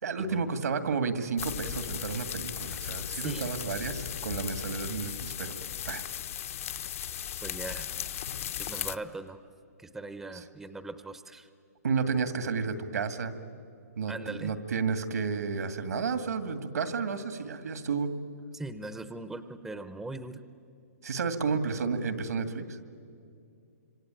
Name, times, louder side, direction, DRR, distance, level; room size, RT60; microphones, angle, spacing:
voice 1, 0.0-5.5 5.9-6.0 11.8-13.3 14.0-18.1 21.0-22.8, right 5 dB, 85° right, 10 dB, 2.2 m, -31 dB
sound 1, 1.4-9.0, left 10 dB, 55° left, 1.0 m, -36 dB
voice 2, 3.1-3.5 7.4-7.9 8.6-9.4 9.8-11.5 14.1-14.5 18.5-20.4, right 2 dB, 5° right, 11 dB, 0.7 m, -40 dB
26.0 x 25.0 x 9.1 m, 2.5 s
hypercardioid pair, 155°, 9 cm